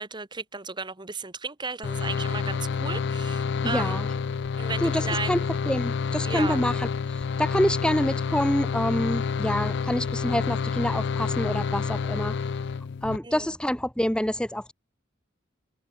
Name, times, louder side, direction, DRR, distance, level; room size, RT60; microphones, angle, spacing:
voice 1, 0.0-4.0 4.6-5.4 6.2-6.6 13.2-13.5, right 4 dB, 25° right, 1.6 m, -34 dB
sound 1, 1.8-13.2, left 5 dB, 60° left, 0.4 m, -28 dB
voice 2, 3.6-4.1 4.8-12.4 13.0-14.7, equal, 5° left, 0.9 m, -27 dB
head